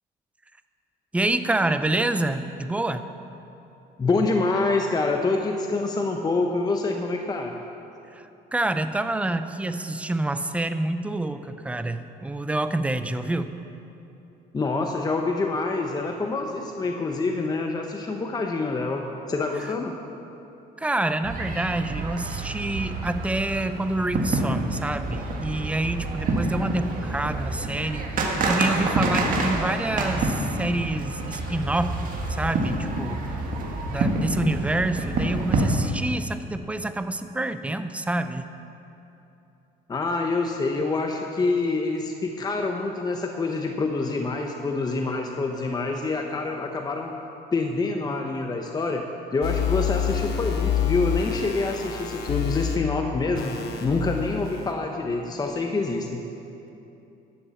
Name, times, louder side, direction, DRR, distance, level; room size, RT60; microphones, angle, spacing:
voice 1, 1.1-3.1 8.1-13.5 19.6-19.7 20.8-33.4 33.9-38.5, right 2 dB, 5° right, 10 dB, 0.5 m, -27 dB
voice 2, 4.0-7.6 14.5-20.0 39.9-47.1 47.5-49.1 49.3-53.5 53.8-56.2, left 3 dB, 25° left, 3 dB, 0.7 m, -26 dB
sound 1, 21.2-35.7, right 2 dB, 55° right, 1.7 m, -28 dB
sound 2, 49.4-52.8 53.3-54.7, left 8 dB, 75° left, 1.2 m, -27 dB
12.0 x 7.2 x 7.0 m, 2.9 s
cardioid pair, 110°, 17 cm